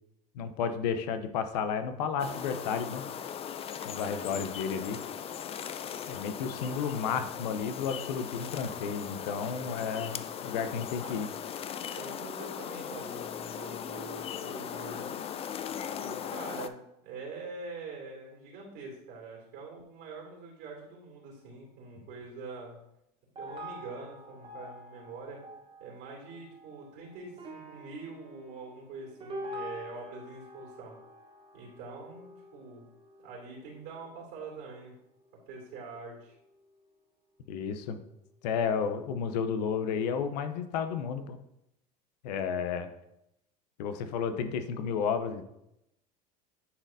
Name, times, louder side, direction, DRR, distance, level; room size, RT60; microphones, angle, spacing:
voice 1, 0.3-3.0 3.8-5.0 6.1-11.3 22.0-22.1 37.5-38.0 38.4-41.4 42.2-42.9 43.8-45.4, left 6 dB, 80° left, 9 dB, 0.7 m, -32 dB
sound 1, 2.2-16.7, left 8 dB, 30° left, 0.4 m, -39 dB
voice 2, 11.0-11.3 11.9-15.1 16.0-22.8 23.4-25.4 25.8-31.0 31.5-32.3 32.5-32.9 33.2-34.9 35.5-36.3, right 4 dB, 65° right, -2 dB, 2.5 m, -44 dB
sound 2, 22.2-22.3 23.4-34.4 35.1-35.9 36.3-36.8 38.3-38.4, equal, 25° right, 1.1 m, -46 dB
9.6 x 4.2 x 2.7 m, 0.82 s
supercardioid pair, 100°, 21 cm